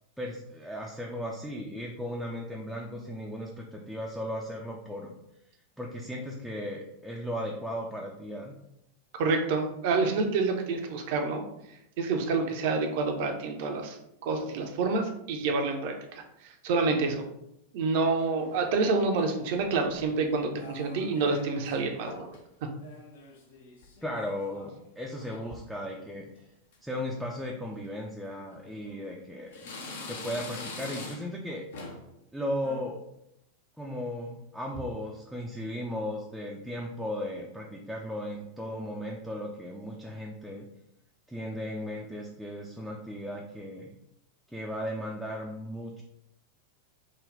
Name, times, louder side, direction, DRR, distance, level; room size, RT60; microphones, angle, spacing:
voice 1, 0.2-5.1 5.8-8.5 24.0-26.5 26.8-29.7 30.1-31.6 32.3-33.0 33.8-40.7 41.3-43.9 44.5-46.0, equal, ahead, -2 dB, 0.4 m, -36 dB
voice 2, 9.2-11.4 12.0-14.0 14.2-17.2 17.7-22.3, right 4 dB, 50° right, 4 dB, 0.6 m, -28 dB
sound 1, 18.2-18.9 19.6-20.1 20.5-21.8 22.1-22.4 22.7-24.7 25.0-25.5 26.0-26.4 26.7-26.8 27.7-27.9 28.5-29.2 29.5-31.4 31.7-32.1 32.5-32.8, left 3 dB, 60° left, 0.7 m, -44 dB
3.8 x 2.2 x 3.3 m, 0.81 s
figure-of-eight pair, 90°, 0 cm